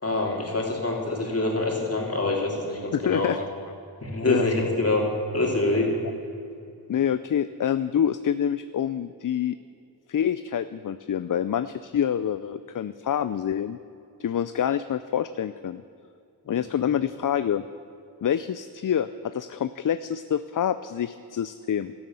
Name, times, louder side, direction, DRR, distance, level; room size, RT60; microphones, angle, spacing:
voice 1, 0.0-3.3 4.0-5.1 5.3-5.9, left 2 dB, 35° left, -1 dB, 3.4 m, -25 dB
voice 2, 2.9-3.4 4.2-4.5 6.9-9.6 10.1-13.8 14.2-15.8 16.5-17.6 18.2-21.9, left 9 dB, 50° left, 13 dB, 0.5 m, -26 dB
12.5 x 12.0 x 8.1 m, 2.6 s
cardioid pair, 60°, 40 cm